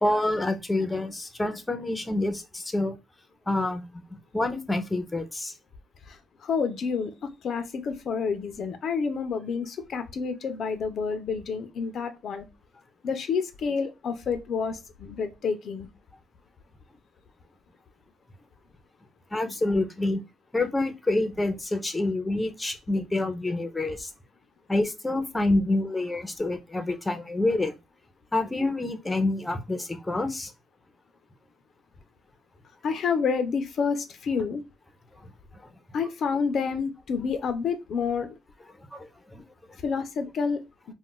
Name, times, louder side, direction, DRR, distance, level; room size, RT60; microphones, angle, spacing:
voice 1, 0.0-2.9 3.5-4.0 4.3-5.5 19.3-20.2 20.5-24.1 24.7-27.7 28.3-30.5 38.9-39.4 39.7-39.8, left 2 dB, 15° left, 0.5 m, -27 dB
voice 2, 6.1-12.5 13.0-15.9 32.8-34.6 35.9-38.3 39.8-40.6, left 5 dB, 60° left, 0.4 m, -29 dB
2.4 x 2.1 x 3.6 m
cardioid pair, 90°, 0 cm